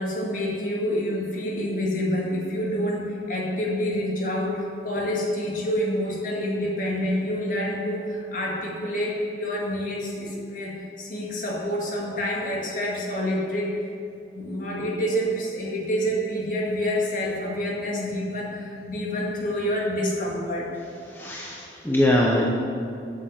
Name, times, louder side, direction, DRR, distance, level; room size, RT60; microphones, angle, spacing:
voice 1, 0.0-13.8 14.4-20.7, equal, 45° left, -2 dB, 1.9 m, -27 dB
voice 2, 21.1-22.5, left 1 dB, 10° left, -2 dB, 0.7 m, -22 dB
8.4 x 6.8 x 7.6 m, 2.6 s
head